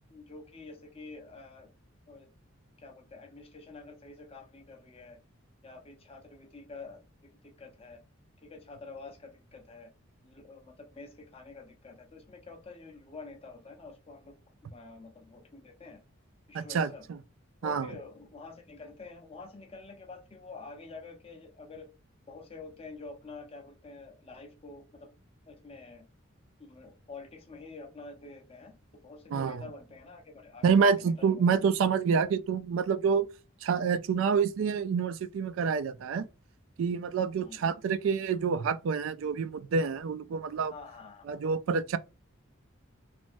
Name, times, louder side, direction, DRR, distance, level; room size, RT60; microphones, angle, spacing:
voice 1, 0.1-1.7 2.1-2.3 2.8-5.2 5.6-7.0 7.4-8.0 8.4-9.9 10.2-14.3 14.6-16.0 16.5-17.0 17.6-21.9 22.3-25.1 25.5-26.0 26.6-31.5 37.4-37.6 40.7-41.2, left 3 dB, 30° left, 0.7 m, -48 dB
voice 2, 16.5-17.2 17.6-17.9 29.3-29.6 30.6-33.3 33.6-36.3 36.8-40.7 41.3-42.0, right 6 dB, 65° right, 0.3 m, -27 dB
3.3 x 2.0 x 2.6 m
head